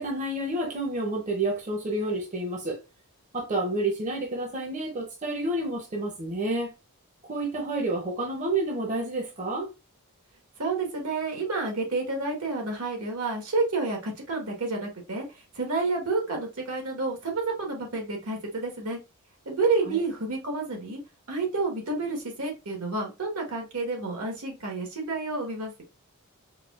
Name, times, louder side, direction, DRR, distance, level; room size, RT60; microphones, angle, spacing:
voice 1, 0.0-2.8 3.3-6.7 7.2-9.7 19.8-20.0, right 2 dB, 35° right, 0.7 m, -29 dB
voice 2, 10.6-15.3 15.5-19.0 19.4-21.0 21.3-25.8, right 3 dB, 80° right, 1.3 m, -29 dB
4.6 x 2.3 x 2.3 m
head